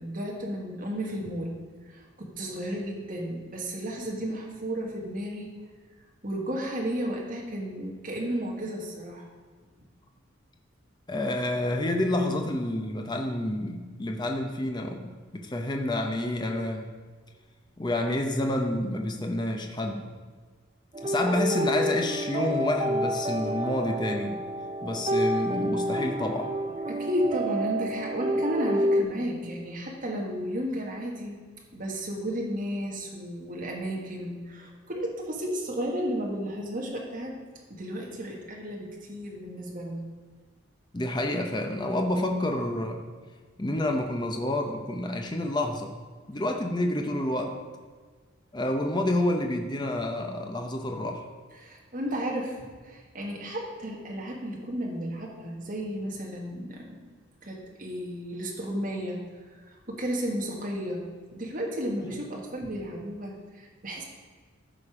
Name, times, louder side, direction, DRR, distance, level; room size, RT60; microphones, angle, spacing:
voice 1, 0.0-1.6 1.9-5.5 6.2-9.3 26.9-31.4 31.7-37.4 37.7-40.0 51.6-52.6 52.8-57.0 57.4-59.2 59.9-61.0 61.3-64.0, equal, 40° right, -1 dB, 1.7 m, -33 dB
voice 2, 11.1-16.9 17.8-20.1 21.0-24.4 24.8-26.5 40.9-43.0 43.6-45.9 46.3-47.6 48.5-51.2, left 1 dB, 20° left, 3 dB, 0.7 m, -29 dB
sound 1, 20.9-29.0, equal, 25° right, 0.5 m, -29 dB
14.0 x 5.2 x 5.0 m, 1.5 s
head